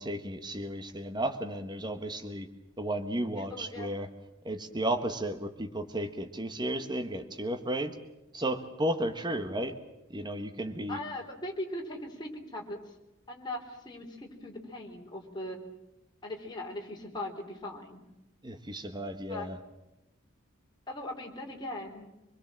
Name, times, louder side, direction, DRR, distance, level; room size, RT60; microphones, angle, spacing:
voice 1, 0.0-2.5 2.8-4.1 4.4-7.9 8.3-9.8 10.1-11.0 18.4-19.6, right 1 dB, 20° right, 6 dB, 1.5 m, -33 dB
voice 2, 3.4-3.9 10.9-12.8 13.3-15.6 16.2-18.0 19.3-19.5 20.9-22.1, left 1 dB, 20° left, 0 dB, 3.8 m, -39 dB
26.0 x 21.0 x 7.6 m, 0.94 s
head